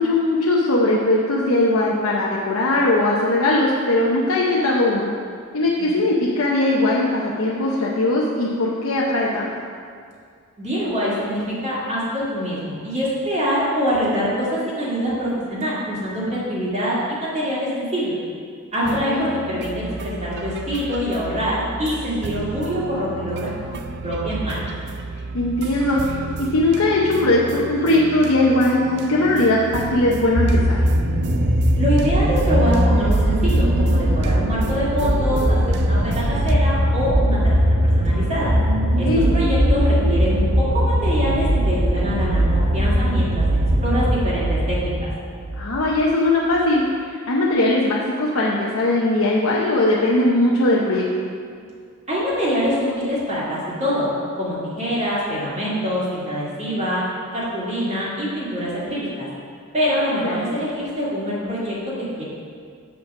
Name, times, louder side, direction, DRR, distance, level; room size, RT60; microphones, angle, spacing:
voice 1, 0.0-5.1 5.5-9.5 18.8-19.3 25.3-30.8 39.1-39.2 45.6-46.8 47.1-51.3 60.2-60.4, left 2 dB, 75° left, -4 dB, 0.8 m, -19 dB
voice 2, 10.6-18.2 18.7-23.7 24.0-24.7 31.8-37.6 38.0-38.5 39.0-43.4 43.8-45.1 52.1-54.1 54.4-57.0 57.3-59.3 59.7-62.2, equal, 35° right, -8 dB, 2.0 m, -24 dB
sound 1, 18.8-36.6, right 4 dB, 50° right, 0.4 m, -33 dB
sound 2, 30.1-45.7 46.5-46.6, equal, 85° right, 1.0 m, -19 dB
6.7 x 5.3 x 6.0 m, 2.1 s
head